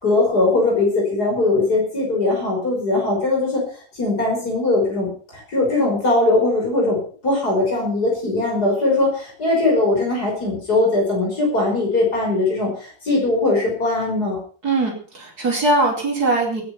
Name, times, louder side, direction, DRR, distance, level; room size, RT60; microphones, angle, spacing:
voice 1, 0.0-3.6 4.0-7.0 7.2-14.4, left 2 dB, 85° left, -1 dB, 6.2 m, -20 dB
voice 2, 14.6-16.6, right 2 dB, 80° right, -1 dB, 5.0 m, -20 dB
20.0 x 10.0 x 5.9 m, 0.43 s
omnidirectional pair, 1.6 m